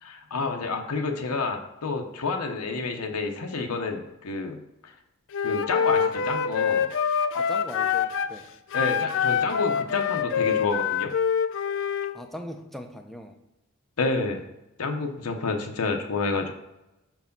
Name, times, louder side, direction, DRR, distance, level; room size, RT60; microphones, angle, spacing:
voice 1, 0.0-4.9 5.4-6.9 8.7-11.1 14.0-14.4 14.8-16.5, left 4 dB, 85° left, 3 dB, 0.8 m, -29 dB
Wind instrument woodwind instrument, 5.3-8.3 8.7-12.1, left 7 dB, 60° left, 0.4 m, -25 dB
voice 2, 7.3-8.5 12.1-13.4, equal, ahead, 5 dB, 0.5 m, -40 dB
6.1 x 4.6 x 5.3 m, 0.95 s
head